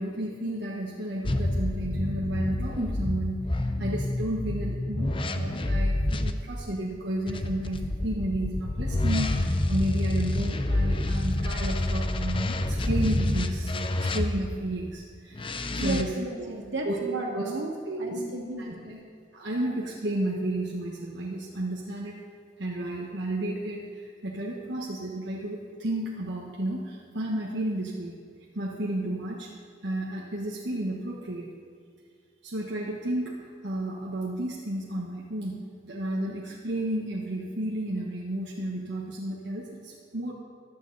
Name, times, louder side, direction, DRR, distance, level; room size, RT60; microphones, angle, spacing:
voice 1, 0.0-16.5 16.8-17.5 17.9-18.3 18.6-18.7 19.3-22.2 22.6-28.2 28.5-29.5 29.8-31.5 32.4-40.3, right 1 dB, 65° right, -3 dB, 1.3 m, -32 dB
sound 1, 1.2-6.3 7.3-14.6 15.3-16.0, left 1 dB, 30° left, 0.6 m, -28 dB
voice 2, 15.8-19.0, right 1 dB, 85° right, 0 dB, 2.3 m, -34 dB
15.5 x 12.0 x 4.1 m, 2.1 s
head